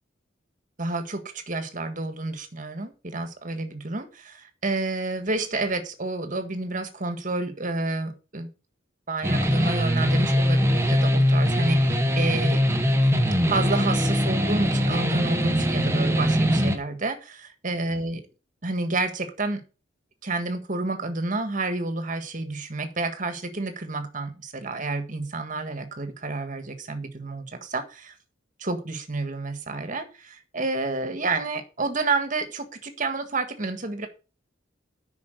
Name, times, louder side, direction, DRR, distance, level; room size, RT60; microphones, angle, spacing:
voice 1, 0.8-8.5 9.1-12.6 13.5-18.2 18.6-19.6 20.2-28.1 28.6-34.1, right 3 dB, 40° right, 8 dB, 1.7 m, -29 dB
sound 1, 9.2-16.8, equal, 15° right, 1.2 m, -22 dB
9.6 x 5.9 x 6.6 m, 0.33 s
head